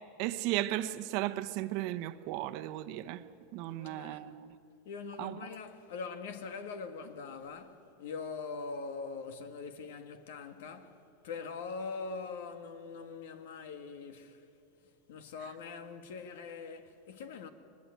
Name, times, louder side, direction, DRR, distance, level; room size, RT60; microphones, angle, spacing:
voice 1, 0.2-3.2 3.5-4.3 5.2-5.4, right 15 dB, 55° right, 1.0 m, -35 dB
voice 2, 3.6-4.3 4.9-14.4 15.1-17.5, left 4 dB, 75° left, 1.8 m, -42 dB
22.0 x 20.0 x 9.3 m
hypercardioid pair, 115°, 0 cm